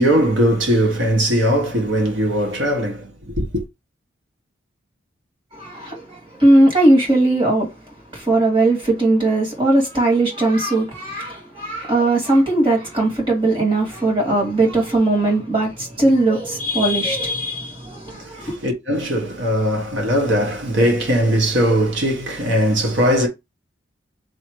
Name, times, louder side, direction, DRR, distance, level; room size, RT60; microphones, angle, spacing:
voice 1, 0.0-3.6 18.1-23.3, equal, 75° right, 1.4 m, -19 dB
voice 2, 5.5-7.7 8.1-18.6, right 2 dB, 25° right, 2.0 m, -18 dB
3.2 x 2.9 x 4.6 m
head